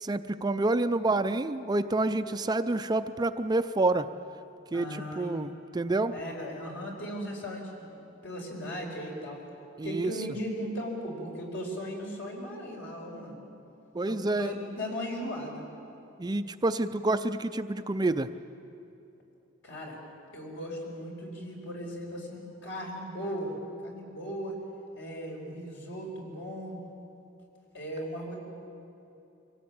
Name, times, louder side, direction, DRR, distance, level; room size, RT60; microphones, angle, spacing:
voice 1, 0.0-4.1 4.7-6.1 9.8-10.1 13.9-14.5 16.2-18.3, right 2 dB, 20° right, 10 dB, 0.5 m, -28 dB
voice 2, 4.7-5.4 6.1-9.4 9.8-13.4 14.0-15.6 19.6-20.0 20.3-24.6 25.0-26.8 27.7-28.4, equal, 65° left, -1 dB, 5.0 m, -37 dB
24.5 x 17.5 x 8.7 m, 2.8 s
head